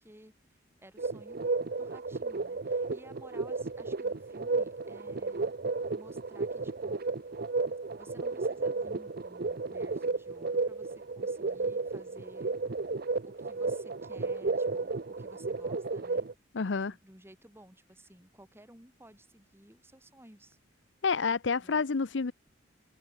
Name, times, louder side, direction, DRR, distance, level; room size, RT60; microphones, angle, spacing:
voice 1, 0.0-1.5 1.8-5.5 5.9-7.0 7.9-12.8 13.2-16.3 16.7-20.6 21.6-21.8, right 1 dB, 15° right, 7.8 m, -56 dB
sound 1, 1.0-16.3, right 3 dB, 50° right, 0.7 m, -33 dB
voice 2, 16.5-16.9 21.0-22.3, left 5 dB, 65° left, 0.7 m, -29 dB
head